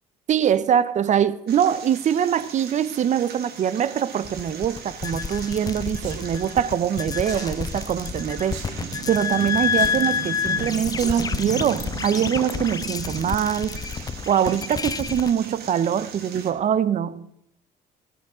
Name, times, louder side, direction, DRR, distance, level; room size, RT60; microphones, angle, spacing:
voice 1, 0.3-8.6 9.1-13.8 14.3-17.3, right 9 dB, 45° right, 0.6 m, -23 dB
sound 1, 1.5-16.5, right 6 dB, 70° right, 1.8 m, -38 dB
sound 2, 4.2-15.3, left 6 dB, 20° left, 0.4 m, -29 dB
sound 3, 6.0-6.3 7.3-7.5 8.5-8.8 9.8-10.0 11.0-11.2 12.1-12.4 12.9-13.0, right 6 dB, 85° right, 2.1 m, -38 dB
14.5 x 12.5 x 3.8 m
cardioid pair, 110°, 17 cm